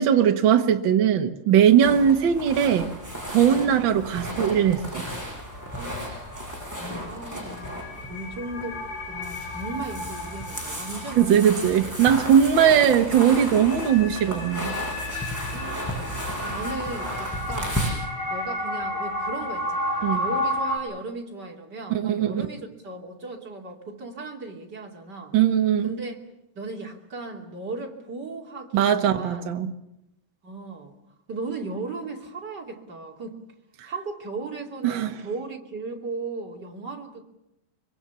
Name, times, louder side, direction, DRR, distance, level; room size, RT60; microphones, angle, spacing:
voice 1, 0.0-2.9 3.3-5.1 11.2-14.7 20.0-20.2 21.9-22.4 25.3-25.9 28.7-29.7 34.8-35.1, right 9 dB, 50° right, 1.6 m, -20 dB
sound 1, 1.7-1.8 5.0-5.1 5.4-20.8, left 1 dB, 90° left, 5.5 m, -33 dB
sound 2, 1.8-17.9, equal, 5° left, 7.1 m, -34 dB
voice 2, 5.7-6.4 6.8-8.8 9.1-11.5 15.5-16.0 16.4-17.8 18.3-25.3 25.8-26.2 26.5-29.5 30.4-31.0 31.3-33.4 33.8-37.2, right 3 dB, 30° right, 3.0 m, -36 dB
24.5 x 24.0 x 7.1 m
omnidirectional pair, 4.0 m